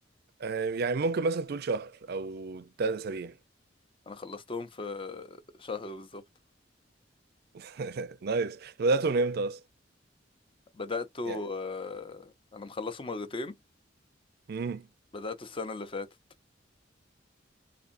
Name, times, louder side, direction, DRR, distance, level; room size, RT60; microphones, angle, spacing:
voice 1, 0.4-3.3 7.5-9.6 11.3-11.4 14.5-14.9, right 3 dB, 55° right, 0.5 m, -30 dB
voice 2, 4.1-6.2 10.8-12.2 12.5-13.5 15.1-16.1, left 3 dB, 30° left, 0.6 m, -37 dB
4.1 x 2.6 x 2.5 m
head